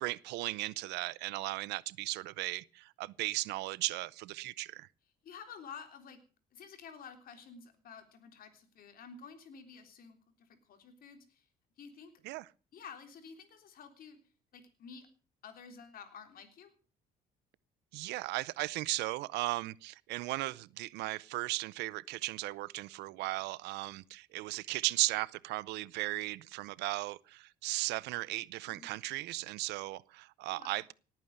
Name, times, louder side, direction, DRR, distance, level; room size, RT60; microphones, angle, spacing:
voice 1, 0.0-4.9 12.2-12.5 17.9-30.9, right 19 dB, 90° right, 0.6 m, -36 dB
voice 2, 5.2-6.2 6.5-11.5 11.8-12.1 12.7-14.2 14.5-15.1 15.4-16.7 28.7-28.9 30.5-30.9, left 6 dB, 60° left, 3.6 m, -51 dB
18.5 x 9.1 x 6.6 m
cardioid pair, 110°, 17 cm